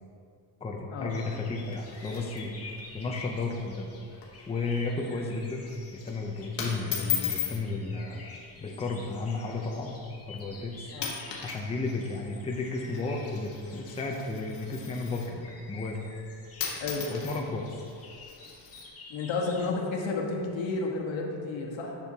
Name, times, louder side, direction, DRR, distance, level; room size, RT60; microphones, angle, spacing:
voice 1, 0.6-2.5 2.9-3.9 4.5-8.2 8.6-10.0 10.3-10.9 11.4-16.0 17.1-17.8, left 3 dB, 15° left, 0 dB, 0.5 m, -33 dB
sound 1, 1.1-19.7, left 3 dB, 30° left, 1.2 m, -50 dB
sound 2, 1.6-2.8 3.1-3.2 3.5-3.8 4.1-4.4 4.8-5.1 5.8-6.1 6.6-7.6 8.6-8.9 9.6-9.7 10.4-10.6 10.9-11.6 11.9-15.4 16.3-16.4 16.6-18.9, left 8 dB, 60° left, 1.4 m, -37 dB
voice 2, 19.1-22.0, left 3 dB, 80° left, -1 dB, 1.4 m, -31 dB
10.5 x 6.5 x 2.8 m, 2.5 s
cardioid pair, 150°, 46 cm